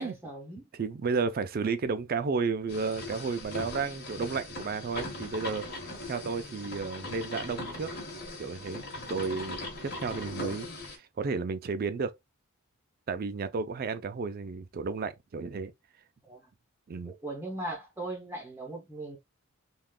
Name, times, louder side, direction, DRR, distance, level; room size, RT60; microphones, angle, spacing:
voice 1, 0.0-0.7 16.2-16.4 17.0-19.2, right 2 dB, 10° right, 0.7 m, -39 dB
voice 2, 0.7-5.7 6.1-7.9 8.4-12.2 13.1-15.7 16.9-17.1, right 4 dB, 40° right, 0.3 m, -32 dB
sound 1, 2.7-11.0, left 2 dB, 45° left, 1.0 m, -40 dB
3.5 x 2.4 x 2.2 m
head